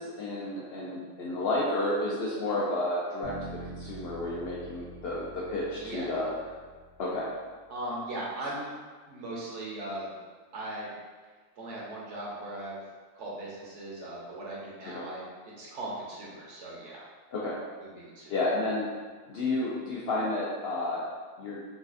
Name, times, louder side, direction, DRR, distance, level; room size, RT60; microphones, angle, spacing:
voice 1, 0.0-6.3 7.0-7.3 14.9-15.0 17.3-17.6 18.3-18.9 19.3-21.0 21.4-21.6, left 2 dB, 65° left, -5 dB, 0.6 m, -31 dB
sound 1, 3.2-7.3, right 3 dB, 85° right, 1.2 m, -46 dB
voice 2, 5.8-6.2 7.7-8.7 9.1-10.1 10.5-10.9 11.6-12.8 13.1-17.0 17.8-18.3, right 1 dB, 65° right, -5 dB, 1.0 m, -38 dB
4.0 x 2.4 x 2.4 m, 1.4 s
omnidirectional pair, 1.4 m